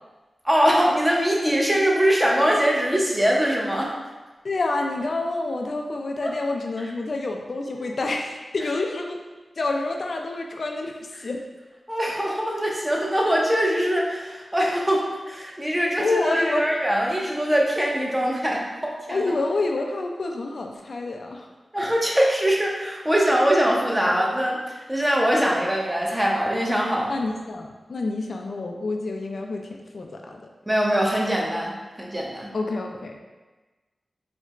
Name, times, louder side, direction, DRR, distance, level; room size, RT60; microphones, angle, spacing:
voice 1, 0.4-3.9 6.2-6.3 6.8-6.9 11.9-19.3 21.7-27.1 30.7-32.5, equal, 10° right, -2 dB, 0.6 m, -22 dB
voice 2, 4.4-9.2 9.6-10.9 11.2-11.4 16.0-16.7 19.1-21.5 27.1-29.7 29.9-30.4 32.5-33.2, left 2 dB, 65° left, 2 dB, 0.3 m, -28 dB
4.3 x 2.1 x 2.4 m, 1.2 s
cardioid pair, 55°, 0 cm